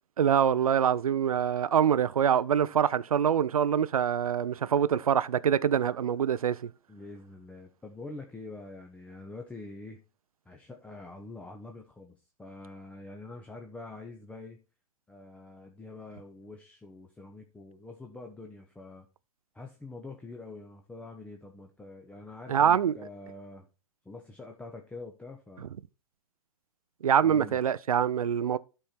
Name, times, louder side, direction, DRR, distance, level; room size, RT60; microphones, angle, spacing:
voice 1, 0.2-6.7 22.5-22.9 25.6-25.7 27.0-28.6, right 8 dB, 75° right, 0.5 m, -25 dB
voice 2, 6.9-10.0 10.5-14.6 15.1-19.1 19.5-23.7 24.0-25.7 27.2-27.6, left 3 dB, 5° left, 0.9 m, -45 dB
11.5 x 4.5 x 4.3 m
figure-of-eight pair, 110°, 18 cm